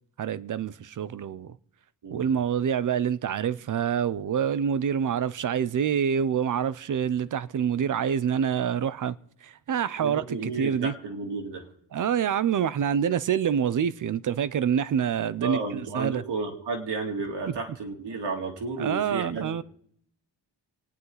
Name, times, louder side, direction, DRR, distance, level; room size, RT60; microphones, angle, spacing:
voice 1, 0.2-1.6 2.1-9.2 9.4-10.9 11.9-16.2 18.8-19.6, right 8 dB, 45° right, 0.5 m, -26 dB
voice 2, 10.0-11.6 15.4-19.6, right 3 dB, 70° right, 2.5 m, -32 dB
27.0 x 9.7 x 3.9 m
wide cardioid pair, 155°, 42 cm